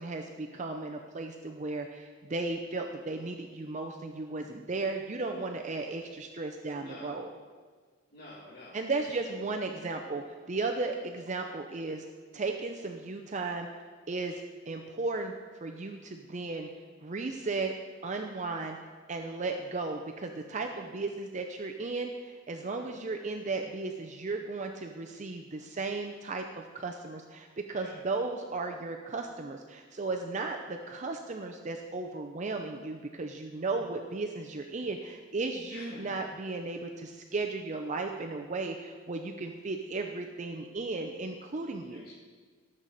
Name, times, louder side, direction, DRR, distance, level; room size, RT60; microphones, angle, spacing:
voice 1, 0.0-7.3 8.7-12.0 12.3-13.7 14.1-15.3 15.6-16.7 17.0-17.7 18.0-18.8 19.1-42.0, right 3 dB, 40° right, 4 dB, 0.6 m, -35 dB
voice 2, 6.8-7.2 8.1-9.2 27.7-27.9 35.7-36.2 41.9-42.1, left 1 dB, 50° left, -7 dB, 2.3 m, -48 dB
18.5 x 7.5 x 4.1 m, 1.5 s
head